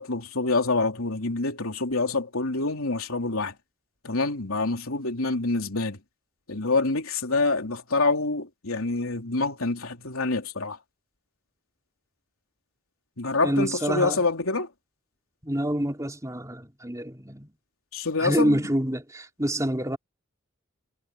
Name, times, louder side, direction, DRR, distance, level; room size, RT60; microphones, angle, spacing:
voice 1, 0.0-3.5 4.0-6.0 6.5-10.8 13.2-14.7 17.9-18.6, left 3 dB, 80° left, 3.3 m, -26 dB
voice 2, 13.4-14.2 15.4-17.5 18.2-20.0, right 1 dB, 15° right, 3.7 m, -27 dB
head